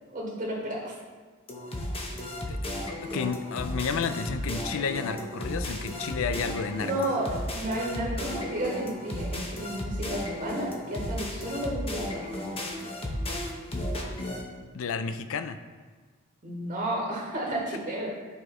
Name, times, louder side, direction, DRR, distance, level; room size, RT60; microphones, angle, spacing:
voice 1, 0.1-0.9 6.8-12.3 16.4-18.1, right 1 dB, 40° right, -5 dB, 1.5 m, -32 dB
sound 1, 1.5-14.4, left 1 dB, 25° left, 0.9 m, -34 dB
voice 2, 2.5-6.9 14.7-15.6, left 5 dB, 70° left, 10 dB, 0.4 m, -31 dB
9.7 x 4.8 x 3.0 m, 1.5 s
head